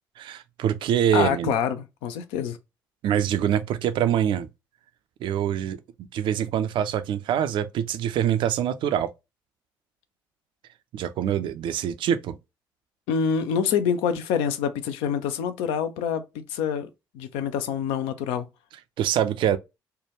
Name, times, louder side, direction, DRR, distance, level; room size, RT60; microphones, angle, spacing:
voice 1, 0.2-1.5 3.0-4.5 5.2-5.8 6.1-9.1 10.9-12.4 19.0-19.6, right 10 dB, 55° right, 0.4 m, -24 dB
voice 2, 1.1-2.6 13.1-16.9 17.1-18.5, left 7 dB, 65° left, 0.4 m, -26 dB
3.3 x 2.2 x 3.0 m
figure-of-eight pair, 40°, 10 cm